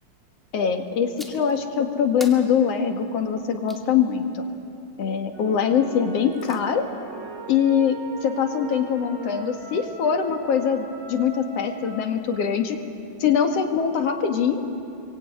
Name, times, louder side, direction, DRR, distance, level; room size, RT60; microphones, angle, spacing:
voice 1, 0.5-4.4 5.0-6.9 7.5-12.8 13.2-14.6, left 7 dB, 55° left, 4 dB, 2.7 m, -23 dB
sound 1, 1.2-1.6 2.2-3.9 6.0-6.6, equal, ahead, 1.8 m, -44 dB
sound 2, 5.3-12.1, right 2 dB, 55° right, 8.7 m, -40 dB
26.5 x 23.5 x 9.4 m, 2.7 s
omnidirectional pair, 3.5 m